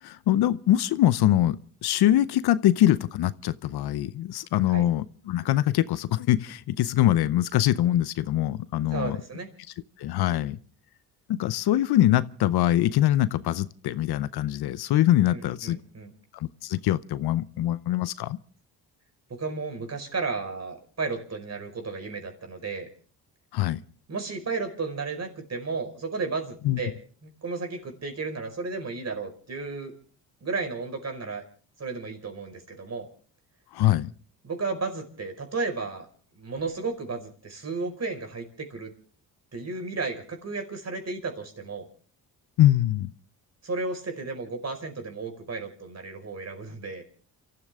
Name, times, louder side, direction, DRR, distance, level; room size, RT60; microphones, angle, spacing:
voice 1, 0.0-9.2 10.0-10.6 11.3-15.8 16.3-18.4 23.5-23.8 26.6-26.8 33.7-34.1 42.6-43.1, left 13 dB, 70° left, 0.8 m, -23 dB
voice 2, 8.9-9.5 15.3-16.1 19.3-22.9 24.1-26.9 27.2-29.9 30.4-31.4 31.8-33.1 34.4-36.1 36.3-38.9 39.5-41.9 43.6-47.0, right 4 dB, 40° right, 5.2 m, -33 dB
29.0 x 14.0 x 3.6 m
cardioid pair, 80°, 40 cm